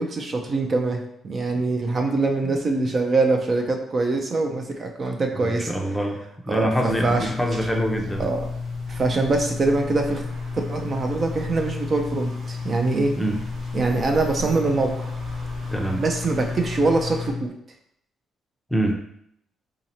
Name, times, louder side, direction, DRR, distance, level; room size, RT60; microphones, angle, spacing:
voice 1, 0.0-5.7 6.5-7.3 8.2-8.4 8.9-10.2 10.7-13.2 13.7-15.1 16.0-17.5, right 3 dB, 40° right, 3 dB, 0.5 m, -23 dB
voice 2, 5.3-6.2 6.5-8.3 13.2-13.4 15.7-16.0 18.7-19.0, equal, 5° left, 1 dB, 0.6 m, -25 dB
sound 1, 6.8-17.5, left 4 dB, 70° left, 0.3 m, -32 dB
sound 2, 6.9-17.3, right 1 dB, 60° right, 1.2 m, -40 dB
3.7 x 2.8 x 2.9 m, 0.72 s
cardioid pair, 90°, 0 cm